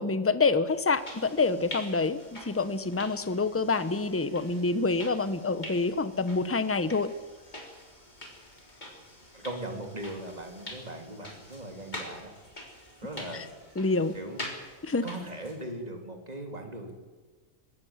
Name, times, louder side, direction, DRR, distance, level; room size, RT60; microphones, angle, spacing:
voice 1, 0.0-7.1 13.3-13.4 13.8-14.2 14.8-15.1, left 3 dB, 10° left, 13 dB, 0.8 m, -27 dB
sound 1, 0.7-15.7, left 1 dB, 30° left, 3.9 m, -45 dB
voice 2, 9.3-12.3 13.0-13.5 14.1-14.4 15.0-16.9, right 1 dB, 30° right, 4 dB, 3.2 m, -39 dB
21.0 x 17.5 x 7.4 m, 1.4 s
omnidirectional pair, 1.4 m